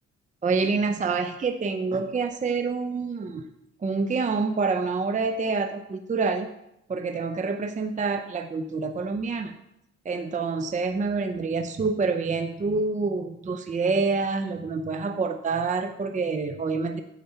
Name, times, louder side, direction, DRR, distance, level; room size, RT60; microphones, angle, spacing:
voice 1, 0.4-3.5 3.8-6.5 6.9-9.5 10.0-17.0, right 4 dB, 25° right, 7 dB, 0.6 m, -27 dB
8.7 x 5.1 x 5.6 m, 0.84 s
cardioid pair, 90°, 30 cm